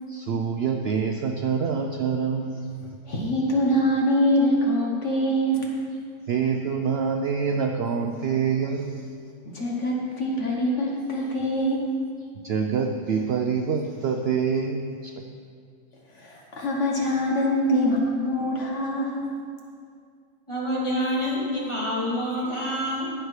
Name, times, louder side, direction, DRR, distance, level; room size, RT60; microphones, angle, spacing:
voice 1, 0.1-2.8 6.3-9.1 12.4-15.1, right 6 dB, 80° right, 4 dB, 0.5 m, -26 dB
voice 2, 3.0-5.7 9.5-11.9 16.1-19.3, equal, 55° left, -1 dB, 1.4 m, -24 dB
voice 3, 20.5-23.1, equal, 20° left, -7 dB, 2.4 m, -27 dB
17.5 x 6.6 x 3.2 m, 2.2 s
omnidirectional pair, 1.6 m